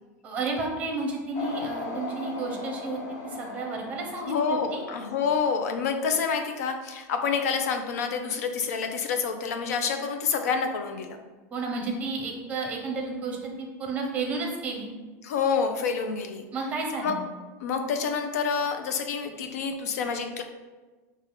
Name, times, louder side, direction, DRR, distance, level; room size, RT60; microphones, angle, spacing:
voice 1, 0.2-4.8 11.5-14.9 16.5-17.2, right 3 dB, 15° right, 1 dB, 0.6 m, -32 dB
sound 1, 1.3-6.0, left 3 dB, 35° left, 0.7 m, -39 dB
voice 2, 4.2-11.2 15.2-16.5 17.0-17.2 17.6-20.4, left 6 dB, 80° left, 6 dB, 0.6 m, -28 dB
4.5 x 2.4 x 4.8 m, 1.3 s
supercardioid pair, 175°, 8 cm